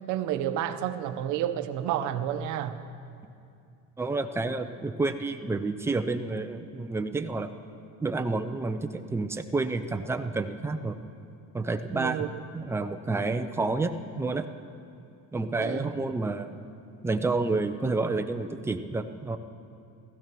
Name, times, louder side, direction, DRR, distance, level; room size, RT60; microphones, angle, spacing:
voice 1, 0.1-2.8 11.9-12.3 15.6-15.9, right 11 dB, 65° right, 9 dB, 0.9 m, -30 dB
voice 2, 4.0-7.5 8.0-11.0 11.5-12.3 12.5-14.5 15.3-16.5 17.0-19.4, right 3 dB, 10° right, 7 dB, 0.5 m, -29 dB
15.5 x 15.0 x 6.0 m, 2.5 s
cardioid pair, 155°, 31 cm